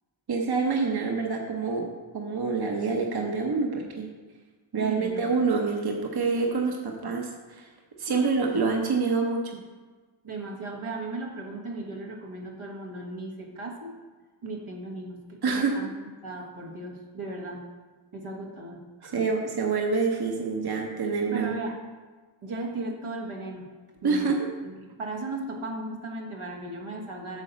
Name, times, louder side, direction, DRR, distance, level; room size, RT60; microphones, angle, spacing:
voice 1, 0.3-1.9 2.1-4.1 4.7-7.7 8.0-9.6 15.4-15.8 19.0-21.5 24.0-24.4, right 4 dB, 50° right, 2 dB, 0.9 m, -26 dB
voice 2, 4.7-5.3 8.1-8.3 10.2-13.9 14.4-15.9 16.2-17.6 18.1-19.2 21.3-21.8 22.4-23.7 24.0-24.3 24.6-27.4, right 2 dB, 85° right, 0 dB, 1.4 m, -36 dB
8.2 x 4.1 x 6.8 m, 1.4 s
wide cardioid pair, 95°, 49 cm